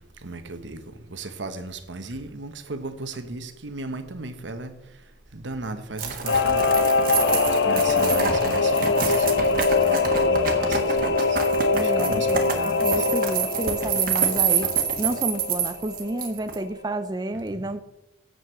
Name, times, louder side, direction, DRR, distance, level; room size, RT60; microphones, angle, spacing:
voice 1, 0.2-0.8 1.1-4.7 5.3-6.7 7.6-11.4 11.7-13.1 17.3-17.7, right 2 dB, 80° right, 9 dB, 1.2 m, -36 dB
sound 1, 6.0-16.6, right 6 dB, 50° right, 1.6 m, -27 dB
Singing / Musical instrument, 6.3-16.3 16.6-16.7, left 4 dB, 75° left, 0.7 m, -23 dB
voice 2, 11.7-14.7 15.0-17.8, right 1 dB, 20° right, 9 dB, 0.5 m, -30 dB
8.1 x 7.8 x 6.9 m, 0.91 s
head